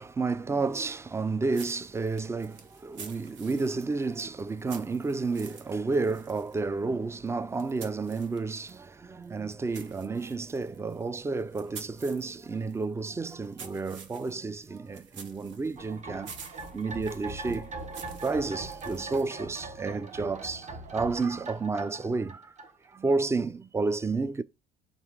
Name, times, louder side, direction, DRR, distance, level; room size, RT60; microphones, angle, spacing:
voice 1, 0.0-16.3 16.7-17.7 18.2-22.5 22.9-24.4, right 3 dB, 15° right, 0.3 m, -31 dB
sound 1, 1.5-8.9 9.2-19.5, right 6 dB, 65° right, 0.9 m, -50 dB
sound 2, 15.8-23.1 23.4-23.5, right 3 dB, 35° right, 0.9 m, -41 dB
3.8 x 2.4 x 4.6 m
hypercardioid pair, 65°, 21 cm